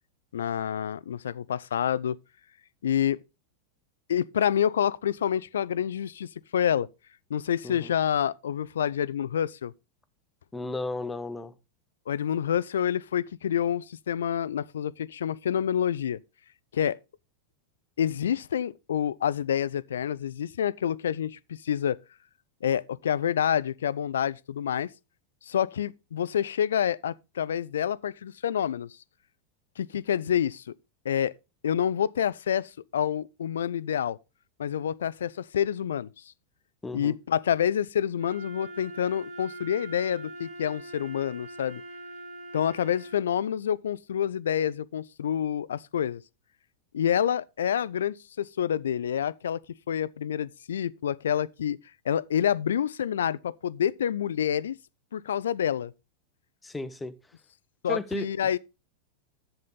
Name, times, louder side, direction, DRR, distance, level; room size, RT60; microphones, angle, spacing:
voice 1, 0.3-2.2 2.8-3.2 4.1-6.9 7.3-9.7 12.1-16.2 16.7-17.0 18.0-22.0 22.6-24.9 25.5-29.0 29.8-30.6 31.0-31.3 31.6-34.2 34.6-36.1 36.9-41.8 42.5-46.2 46.9-49.6 49.9-51.8 52.1-54.8 55.1-55.9 57.8-58.6, left 9 dB, 65° left, 0.5 m, -28 dB
voice 2, 10.5-11.5 36.8-37.1 56.6-57.2 57.9-58.3, left 2 dB, 10° left, 0.9 m, -34 dB
Wind instrument woodwind instrument, 38.2-43.3, right 1 dB, 50° right, 3.9 m, -43 dB
10.5 x 8.0 x 3.9 m
figure-of-eight pair, 90°, 0 cm